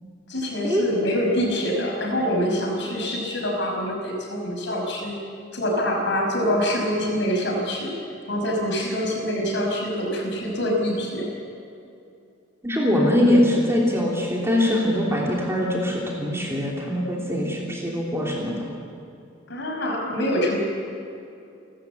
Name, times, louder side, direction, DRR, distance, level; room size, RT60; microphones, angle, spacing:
voice 1, 0.3-5.2 5.5-7.9 8.3-11.3 19.5-20.6, equal, 65° left, 1 dB, 5.8 m, -25 dB
voice 2, 12.6-18.6, left 1 dB, 15° right, -3 dB, 3.2 m, -22 dB
29.5 x 13.5 x 8.3 m, 2.6 s
head